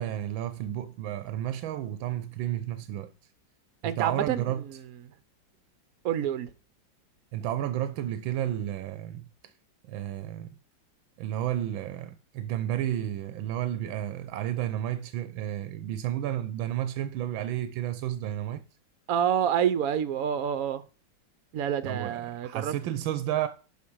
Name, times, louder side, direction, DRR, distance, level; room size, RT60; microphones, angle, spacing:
voice 1, 0.0-3.1 3.8-4.6 7.3-9.3 9.9-10.5 11.2-18.6 21.9-23.5, right 12 dB, 90° right, 1.5 m, -32 dB
voice 2, 3.8-4.7 6.0-6.5 19.1-20.8 21.5-22.7, right 9 dB, 60° right, 1.0 m, -28 dB
11.5 x 5.1 x 4.7 m
omnidirectional pair, 2.1 m